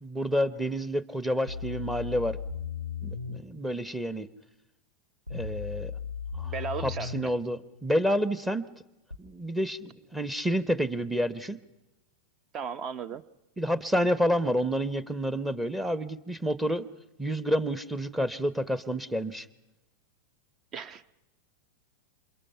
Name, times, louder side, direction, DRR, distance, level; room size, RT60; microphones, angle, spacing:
voice 1, 0.0-2.4 3.0-4.3 5.3-5.9 6.4-6.5 6.8-8.6 9.2-11.6 13.6-16.8 17.2-19.5, equal, 5° right, 1.0 m, -29 dB
sound 1, 1.5-3.4 5.3-7.3 9.1-9.2, left 6 dB, 90° right, 1.5 m, -36 dB
voice 2, 6.4-7.3 12.5-13.3 20.7-21.0, right 6 dB, 30° right, 0.9 m, -36 dB
28.5 x 27.0 x 5.6 m
figure-of-eight pair, 90°, 0 cm